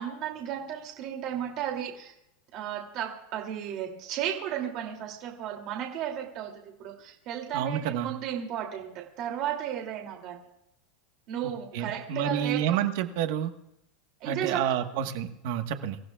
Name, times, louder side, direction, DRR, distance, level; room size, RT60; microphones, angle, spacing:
voice 1, 0.0-2.1 2.5-10.4 11.3-12.6 14.2-14.6, right 10 dB, 40° right, 1 dB, 2.8 m, -34 dB
voice 2, 7.5-8.1 11.7-13.5 14.2-16.0, right 9 dB, 60° right, 7 dB, 1.4 m, -29 dB
26.0 x 15.0 x 2.4 m, 0.81 s
supercardioid pair, 160°, 0 cm